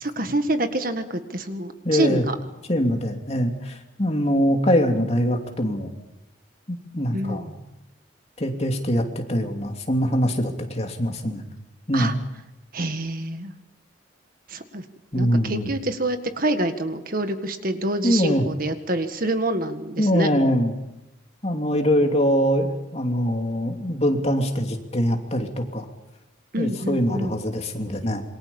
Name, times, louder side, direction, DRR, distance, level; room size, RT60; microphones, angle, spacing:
voice 1, 0.0-2.4 7.1-7.5 11.9-12.1 12.7-13.5 14.5-14.8 15.2-20.3 26.5-27.3, right 1 dB, 45° right, 8 dB, 1.8 m, -26 dB
voice 2, 1.8-2.3 2.7-5.9 6.7-7.6 8.4-11.4 11.9-12.2 15.1-15.7 18.0-18.5 20.0-20.7 21.4-25.8 26.6-28.2, equal, 30° left, 3 dB, 2.9 m, -23 dB
27.0 x 24.0 x 7.2 m, 0.96 s
head